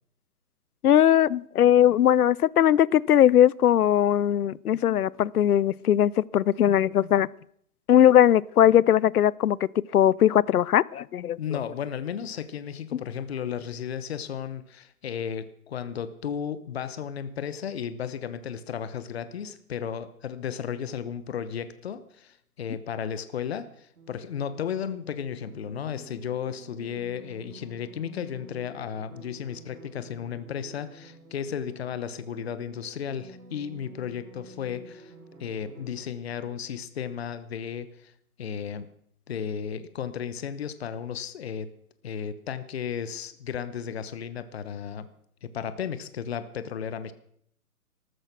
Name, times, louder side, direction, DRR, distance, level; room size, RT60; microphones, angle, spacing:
voice 1, 0.8-7.3 7.9-9.6 9.9-11.4, left 11 dB, 75° left, 0.6 m, -20 dB
voice 2, 11.4-35.1 35.4-38.1 38.4-38.9 39.3-41.7 42.0-45.1 45.4-47.1, left 8 dB, 45° left, 1.0 m, -34 dB
sound 1, 23.9-36.0, right 2 dB, 90° right, 4.5 m, -50 dB
14.0 x 13.0 x 6.0 m
hypercardioid pair, 155°, 45 cm